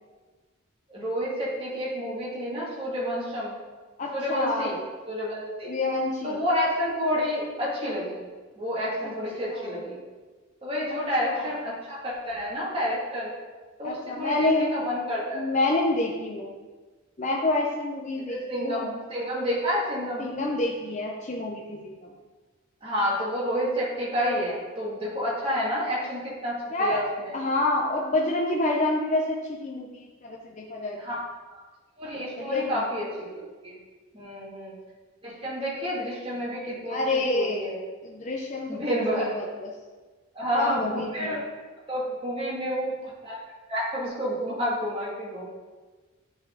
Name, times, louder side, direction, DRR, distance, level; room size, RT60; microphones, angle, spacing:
voice 1, 0.9-3.5 4.1-4.7 5.1-5.7 6.2-8.3 8.6-10.0 10.6-13.3 13.8-15.5 18.3-20.3 22.8-27.3 31.0-31.2 31.5-31.6 32.0-33.1 33.3-33.7 34.1-34.7 35.2-37.8 38.7-39.3 40.3-41.4 41.9-43.4 43.7-45.4, equal, 25° right, -6 dB, 2.2 m, -29 dB
voice 2, 4.0-4.8 5.6-6.4 9.5-9.8 11.2-11.5 13.8-14.7 15.3-16.6 17.2-18.9 20.2-22.1 26.7-27.0 27.3-31.0 32.4-32.9 36.9-37.7 38.0-38.8 39.1-39.7 40.5-41.3, left 2 dB, 35° left, -1 dB, 0.6 m, -28 dB
10.5 x 4.3 x 3.8 m, 1.3 s
head